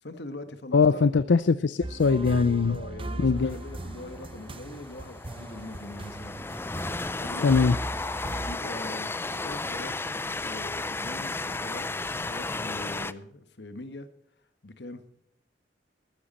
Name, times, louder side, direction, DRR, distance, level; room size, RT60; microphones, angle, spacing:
voice 1, 0.0-1.1 2.7-6.3 7.2-7.8 8.4-10.0 10.4-14.1 14.6-15.2, left 2 dB, 65° left, 10 dB, 1.4 m, -42 dB
voice 2, 0.7-2.8 3.2-3.6 7.4-7.7, left 4 dB, 80° left, 14 dB, 0.5 m, -21 dB
sound 1, 1.8-8.5, right 2 dB, 30° right, 0.8 m, -38 dB
Train, 3.4-13.1, left 3 dB, 15° left, 0.4 m, -34 dB
14.5 x 12.5 x 4.2 m, 0.72 s
head